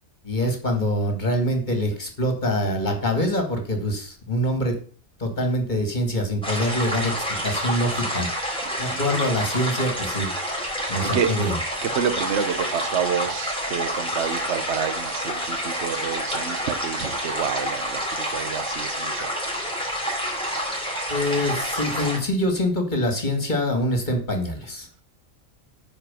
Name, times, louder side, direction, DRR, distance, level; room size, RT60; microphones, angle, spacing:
voice 1, 0.2-4.7 5.2-7.1 7.4-8.3 8.8-10.3 10.9-11.6 21.1-24.9, left 1 dB, 35° left, 2.5 m, -24 dB
sound 1, 6.4-22.2, equal, 5° left, 4.1 m, -28 dB
voice 2, 10.8-11.3 11.8-18.0 18.3-19.3, right 7 dB, 55° right, 1.1 m, -28 dB
9.7 x 5.1 x 7.6 m
omnidirectional pair, 1.4 m